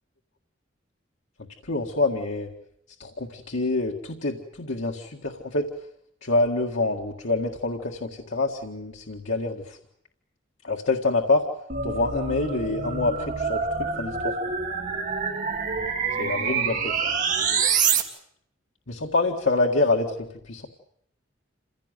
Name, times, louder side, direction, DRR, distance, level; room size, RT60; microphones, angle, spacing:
voice 1, 1.6-2.5 3.0-5.7 6.2-9.8 10.6-11.4 11.8-14.4 16.2-17.1 18.9-20.7, left 2 dB, 90° left, 1 dB, 1.9 m, -26 dB
sound 1, 11.7-18.0, right 6 dB, 45° right, 2.6 m, -26 dB
27.5 x 16.5 x 9.2 m, 0.72 s
head